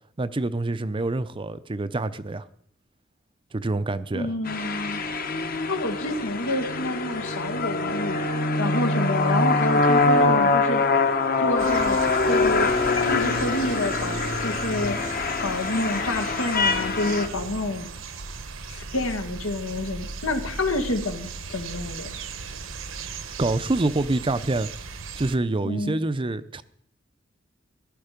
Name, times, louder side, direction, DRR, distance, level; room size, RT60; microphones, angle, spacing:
voice 1, 0.2-2.5 3.5-4.3 23.4-24.7 25.2-26.6, right 2 dB, 25° right, 0.6 m, -26 dB
voice 2, 4.1-5.0 5.4-8.2 8.6-10.8 11.4-12.0 12.2-17.9 18.9-22.2 25.6-26.0, left 1 dB, 90° left, 2.1 m, -28 dB
sound 1, 4.5-17.3, left 3 dB, 45° left, 1.2 m, -24 dB
sound 2, 11.6-25.4, right 4 dB, 70° right, 1.1 m, -37 dB
15.0 x 12.0 x 5.2 m
head